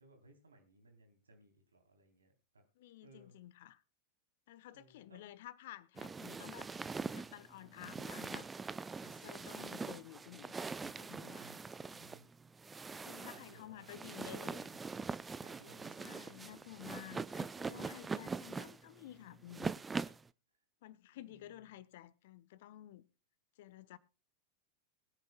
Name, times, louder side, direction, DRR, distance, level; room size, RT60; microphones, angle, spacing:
voice 1, 0.0-2.6 3.0-3.4 4.7-5.2 11.4-12.3 13.3-13.9 15.4-16.0 16.2-16.8 21.1-21.8, right 1 dB, 75° right, 3.4 m, -63 dB
voice 2, 2.8-3.8 4.5-6.7 7.1-8.5 9.0-10.6 10.8-11.5 12.9-14.8 16.0-19.7 20.8-23.0 23.6-24.0, left 14 dB, 55° left, 0.9 m, -52 dB
sound 1, 6.0-20.3, right 4 dB, 15° right, 0.5 m, -43 dB
21.5 x 9.6 x 2.2 m
figure-of-eight pair, 90°, 0 cm